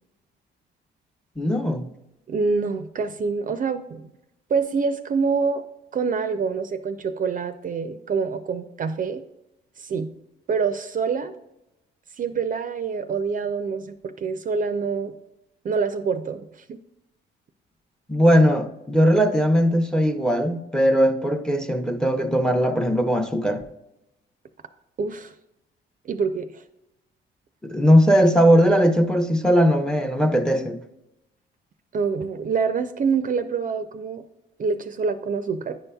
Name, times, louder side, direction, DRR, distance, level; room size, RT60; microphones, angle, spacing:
voice 1, 1.4-1.9 18.1-23.6 27.6-30.8, equal, 5° left, 0.6 m, -19 dB
voice 2, 2.3-4.1 4.5-5.6 5.9-9.2 9.8-10.1 10.5-11.3 12.2-15.1 15.6-16.8 25.0-25.3 26.0-26.6 31.9-34.2 34.6-35.8, right 5 dB, 45° right, 0.4 m, -26 dB
9.4 x 5.4 x 2.3 m
cardioid pair, 90°, 20 cm